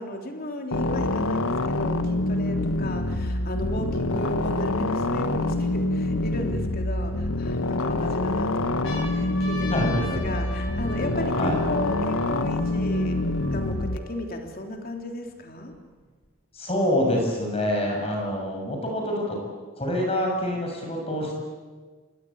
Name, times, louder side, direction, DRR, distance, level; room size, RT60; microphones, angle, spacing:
voice 1, 0.0-13.2 13.5-15.7, left 1 dB, 45° left, 3 dB, 3.4 m, -35 dB
sound 1, 0.7-14.0, left 2 dB, 80° left, 1.3 m, -26 dB
sound 2, 8.7-14.3 15.0-15.1 15.3-16.3 17.2-18.3, left 1 dB, 65° left, 6.2 m, -40 dB
voice 2, 9.7-10.2 11.3-11.6 16.5-19.4 19.8-21.4, left 1 dB, 30° left, 1 dB, 6.9 m, -26 dB
28.0 x 22.5 x 8.6 m, 1.4 s
head